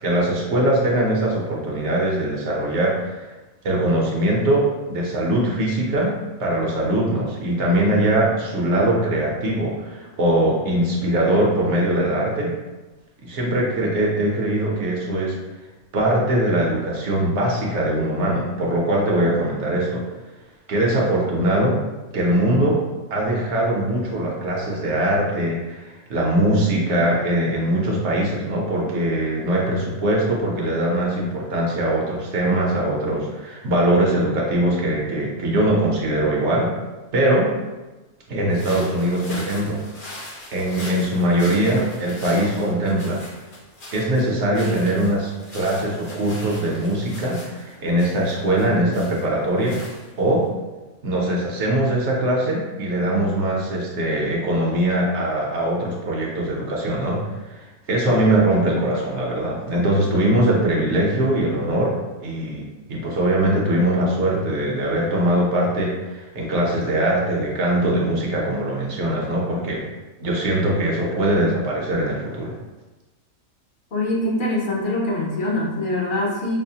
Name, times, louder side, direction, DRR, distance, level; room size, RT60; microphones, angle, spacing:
voice 1, 0.0-3.3 3.6-6.1 6.4-12.5 13.2-15.4 15.9-20.0 20.7-21.8 22.1-22.8 23.1-36.7 37.1-37.5 38.3-39.8 40.5-43.2 43.9-49.8 50.2-50.5 51.0-62.0 62.2-69.8 70.2-72.5, right 1 dB, 60° right, -3 dB, 1.0 m, -21 dB
sound 1, 38.5-50.4, left 1 dB, 70° left, 1.5 m, -41 dB
voice 2, 73.9-76.6, left 1 dB, 45° left, -3 dB, 0.7 m, -23 dB
5.5 x 2.0 x 2.7 m, 1.2 s
omnidirectional pair, 1.5 m